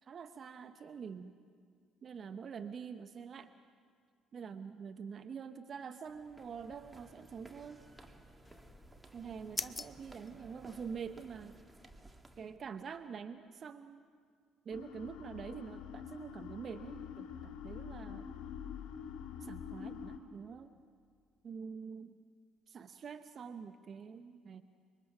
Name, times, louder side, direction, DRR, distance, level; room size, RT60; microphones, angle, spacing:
voice 1, 0.0-1.3 2.0-3.5 4.3-7.8 9.1-11.6 12.4-14.0 14.6-18.3 19.4-20.8 21.4-22.2 22.7-24.6, right 6 dB, 50° right, 9 dB, 0.8 m, -46 dB
sound 1, 6.0-12.6, right 2 dB, 15° right, 2.0 m, -57 dB
sound 2, 8.4-11.2, left 3 dB, 25° left, 0.7 m, -46 dB
sound 3, 14.7-20.2, left 8 dB, 70° left, 2.0 m, -46 dB
25.5 x 22.5 x 6.0 m, 2.1 s
hypercardioid pair, 55°, 0 cm